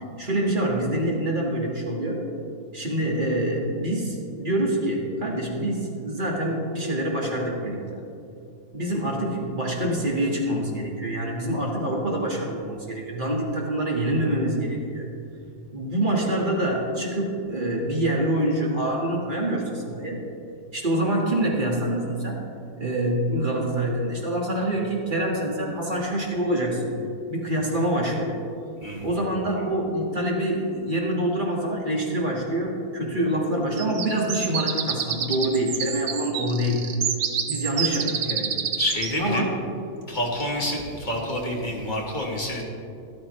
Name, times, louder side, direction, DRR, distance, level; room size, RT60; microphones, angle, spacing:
voice 1, 0.2-2.2 2.7-8.0 8.7-15.1 15.7-20.2 20.7-22.5 22.8-28.4 29.0-36.9 37.5-38.6 39.2-39.6, right 1 dB, 30° right, -2 dB, 1.7 m, -26 dB
voice 2, 28.8-29.1 38.8-39.4 40.1-42.6, left 1 dB, 30° left, -2 dB, 1.5 m, -28 dB
sound 1, 33.8-39.2, right 7 dB, 80° right, 1.3 m, -28 dB
13.0 x 12.0 x 3.1 m, 2.6 s
omnidirectional pair, 1.6 m